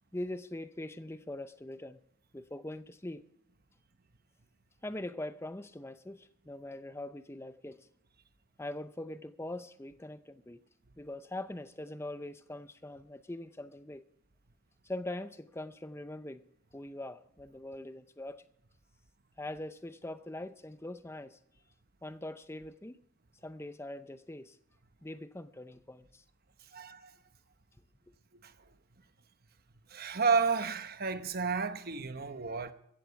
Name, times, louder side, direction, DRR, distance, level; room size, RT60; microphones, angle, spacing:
voice 1, 0.1-2.0 2.3-3.2 4.8-7.9 8.6-10.6 11.0-14.0 14.8-16.4 16.7-18.4 19.4-21.4 22.0-23.0 23.4-24.6 25.0-26.2, left 1 dB, 10° left, 0.6 m, -42 dB
voice 2, 26.7-27.1 28.4-28.5 29.9-32.7, right 5 dB, 45° right, 1.0 m, -31 dB
15.5 x 14.5 x 4.6 m
head